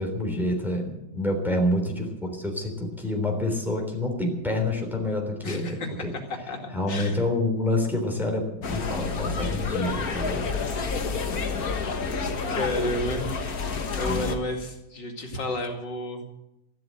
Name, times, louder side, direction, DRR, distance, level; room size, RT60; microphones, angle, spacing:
voice 1, 0.0-6.1 6.7-10.8 14.0-14.2, left 1 dB, ahead, 0 dB, 3.5 m, -28 dB
voice 2, 5.4-5.9 6.5-7.2 12.1-13.6 13.9-16.3, left 1 dB, 80° left, 1 dB, 2.9 m, -32 dB
sound 1, 8.6-14.4, left 4 dB, 60° left, 1.9 m, -29 dB
13.5 x 12.5 x 7.7 m, 0.89 s
omnidirectional pair, 1.9 m